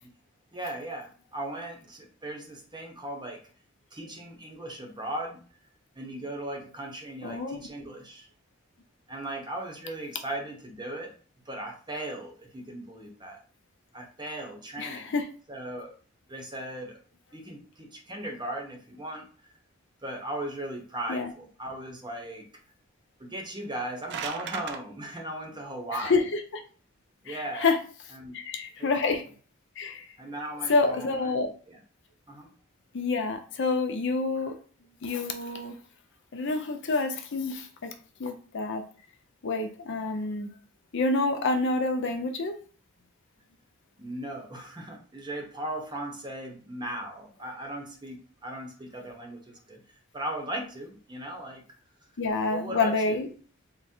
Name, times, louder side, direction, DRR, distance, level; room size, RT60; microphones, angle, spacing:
voice 1, 0.5-3.4 3.9-5.4 5.9-8.3 9.1-11.1 11.5-13.4 13.9-15.2 15.5-15.9 16.3-17.0 17.3-19.3 20.0-22.5 23.2-26.1 27.2-27.7 28.1-28.4 28.8-29.2 30.2-31.8 32.3-32.5 44.0-49.8 50.1-51.6 52.5-53.2, right 1 dB, 20° right, 1 dB, 0.9 m, -37 dB
voice 2, 7.2-7.6 14.8-15.3 21.1-21.3 26.0-26.6 27.3-27.8 28.3-29.2 29.8-30.1 30.7-31.5 32.9-34.6 35.0-35.8 36.3-37.9 38.2-38.8 39.4-40.5 40.9-42.6 52.2-53.3, left 3 dB, 60° left, 6 dB, 0.5 m, -28 dB
sound 1, 23.6-24.8, right 7 dB, 55° right, 0.4 m, -36 dB
3.7 x 2.0 x 4.3 m, 0.41 s
head